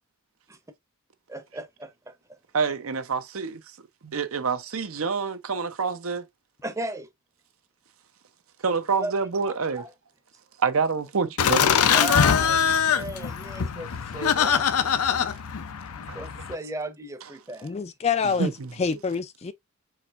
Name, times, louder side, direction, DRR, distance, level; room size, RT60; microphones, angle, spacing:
voice 1, 1.3-2.4 6.6-7.1 8.9-9.1 9.4-9.9 11.9-14.6 16.0-17.7, right 1 dB, 15° right, 0.7 m, -36 dB
voice 2, 2.5-3.6 4.0-6.2 8.6-9.8 10.6-11.8 16.1-16.2 18.4-18.7, right 5 dB, 70° right, 0.7 m, -27 dB
Laughter, 11.4-16.5, left 7 dB, 85° left, 0.6 m, -23 dB
voice 3, 17.6-18.5 18.8-19.5, left 5 dB, 30° left, 0.4 m, -26 dB
4.8 x 4.3 x 2.4 m
head